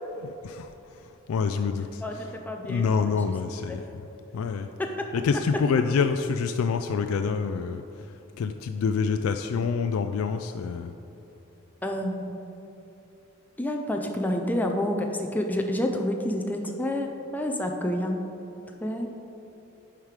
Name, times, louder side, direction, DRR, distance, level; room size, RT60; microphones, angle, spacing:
voice 1, 0.2-0.7 1.0-4.1 4.3-4.7 5.1-10.9, left 5 dB, 80° left, 7 dB, 0.3 m, -27 dB
voice 2, 2.5-3.2 3.7-3.8 4.8-5.1 11.8-12.3 13.6-18.2 18.8-19.1, left 1 dB, 10° left, 2 dB, 0.4 m, -29 dB
9.1 x 4.9 x 4.8 m, 3.0 s
head